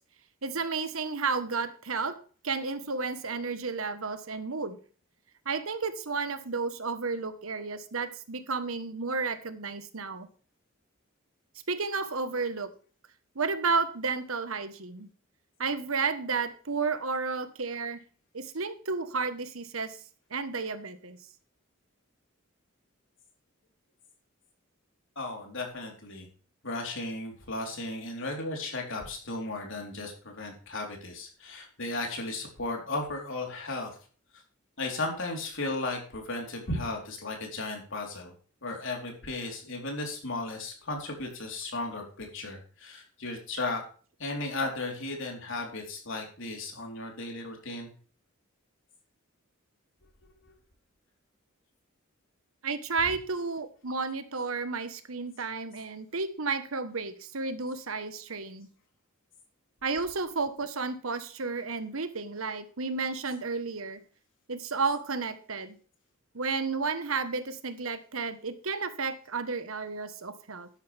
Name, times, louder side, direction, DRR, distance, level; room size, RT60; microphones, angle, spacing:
voice 1, 0.4-2.2 2.4-4.8 5.4-10.3 11.7-12.7 13.3-15.1 15.6-18.0 18.3-20.0 20.3-21.2 52.6-58.7 59.8-64.0 64.5-65.8 66.3-70.7, right 4 dB, 85° right, 11 dB, 1.4 m, -32 dB
voice 2, 25.2-26.3 26.6-33.9 34.8-38.3 38.6-43.8 44.2-47.9, left 2 dB, 65° left, 1 dB, 4.0 m, -35 dB
12.5 x 10.5 x 3.5 m, 0.40 s
head